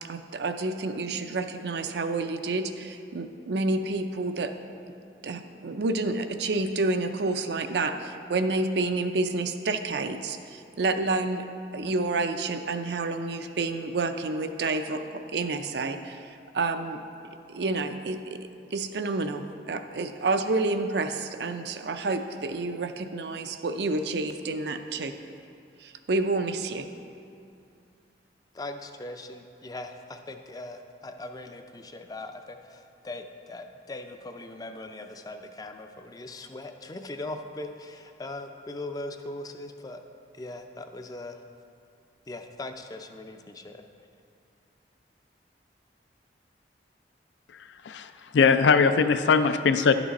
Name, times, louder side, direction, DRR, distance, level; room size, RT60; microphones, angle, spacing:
voice 1, 0.0-4.5 5.2-11.5 11.7-15.0 15.3-17.0 17.5-25.1 25.8-26.9, right 3 dB, 65° right, 7 dB, 0.5 m, -29 dB
voice 2, 28.5-40.0 40.3-41.4 42.3-43.9, left 2 dB, 20° left, 6 dB, 0.4 m, -40 dB
voice 3, 47.8-49.9, left 5 dB, 85° left, 10 dB, 0.4 m, -21 dB
11.0 x 6.0 x 4.1 m, 2.5 s
head